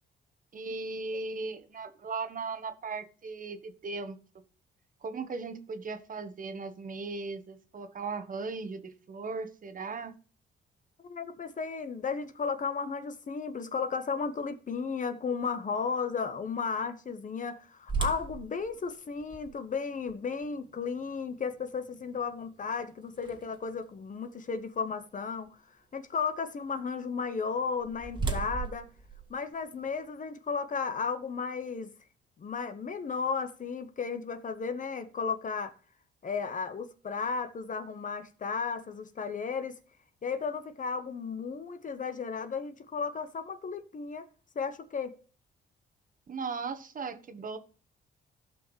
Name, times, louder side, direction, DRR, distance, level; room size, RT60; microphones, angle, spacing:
voice 1, 0.5-4.2 5.0-10.1 46.3-47.6, right 4 dB, 45° right, 1.2 m, -37 dB
voice 2, 11.0-25.6 25.9-28.9 29.3-31.9 32.4-35.7 36.2-39.8 40.2-44.3 44.5-45.1, left 5 dB, 40° left, 1.0 m, -34 dB
sound 1, 17.9-23.8 24.4-24.5 25.1-25.3 27.4-30.0, right 5 dB, 25° right, 1.7 m, -38 dB
15.5 x 5.7 x 3.2 m
cardioid pair, 90°, 20 cm